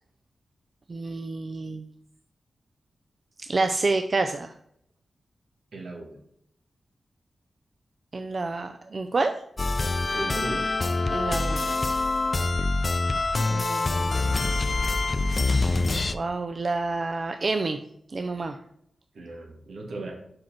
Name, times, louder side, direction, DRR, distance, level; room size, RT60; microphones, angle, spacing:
voice 1, 0.9-1.9 3.5-4.5 8.1-9.3 11.1-11.8 13.4-14.5 15.2-15.8 16.1-17.8 18.1-18.6, right 3 dB, 50° right, 7 dB, 0.4 m, -29 dB
voice 2, 5.7-6.2 10.1-10.7 19.1-20.1, right 2 dB, 80° right, 1 dB, 1.6 m, -36 dB
sound 1, 9.6-16.1, left 3 dB, 45° left, 0.4 m, -25 dB
4.8 x 4.6 x 5.9 m, 0.70 s
cardioid pair, 70°, 0 cm